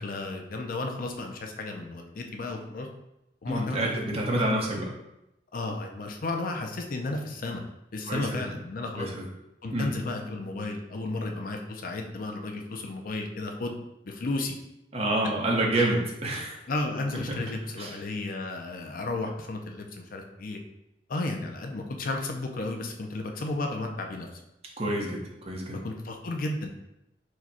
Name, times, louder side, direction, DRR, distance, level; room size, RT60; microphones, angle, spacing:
voice 1, 0.0-2.9 3.4-4.0 4.4-4.5 5.5-7.6 7.9-9.1 9.6-13.8 14.0-14.6 16.7-20.6 21.1-24.4 25.8-26.7, left 2 dB, 50° left, 3 dB, 0.5 m, -33 dB
voice 2, 3.5-4.9 8.1-8.4 9.0-9.3 9.7-9.9 14.9-16.6 17.3-17.4 17.8-18.0 24.8-25.8, right 1 dB, 35° right, -2 dB, 1.0 m, -28 dB
4.7 x 2.2 x 4.2 m, 0.88 s
head